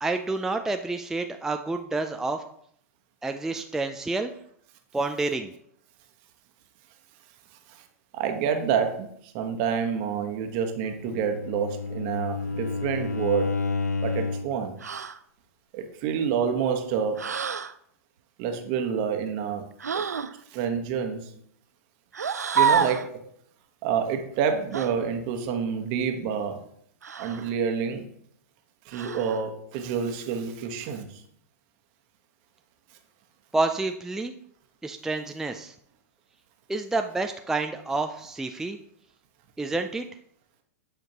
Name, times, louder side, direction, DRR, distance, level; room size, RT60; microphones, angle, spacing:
voice 1, 0.0-2.4 3.2-4.3 4.9-5.5 33.5-34.3 34.8-35.7 36.7-38.8 39.6-40.1, right 3 dB, 5° right, 5 dB, 0.4 m, -29 dB
voice 2, 8.1-13.6 14.0-14.7 15.7-17.2 18.4-19.6 19.9-20.0 20.5-21.3 22.5-23.1 23.8-26.6 27.2-28.0 28.8-31.2, right 7 dB, 45° right, 5 dB, 1.2 m, -28 dB
Bowed string instrument, 11.0-14.6, left 4 dB, 90° left, 0.5 m, -30 dB
sound 1, 14.8-15.2 17.2-17.7 19.8-20.3 22.1-23.1 24.7-24.9 27.0-27.5 28.9-29.4, right 6 dB, 85° right, 0.4 m, -27 dB
8.9 x 5.1 x 2.9 m, 0.68 s
figure-of-eight pair, 105°, 9 cm